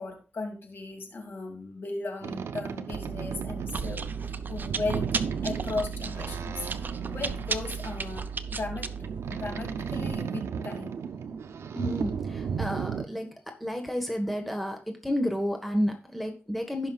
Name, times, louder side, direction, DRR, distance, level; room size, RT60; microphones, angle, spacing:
voice 1, 0.0-5.1 5.4-8.9 9.3-11.0, left 3 dB, 55° left, 2 dB, 2.5 m, -36 dB
Boat Water vehicle, 2.2-13.0, right 6 dB, 85° right, 0.6 m, -35 dB
Chewing mastication, 2.9-10.2, right 5 dB, 45° right, 0.6 m, -35 dB
voice 2, 11.7-16.9, equal, ahead, 3 dB, 1.3 m, -31 dB
16.5 x 5.6 x 2.4 m, 0.34 s
wide cardioid pair, 105°, 4 cm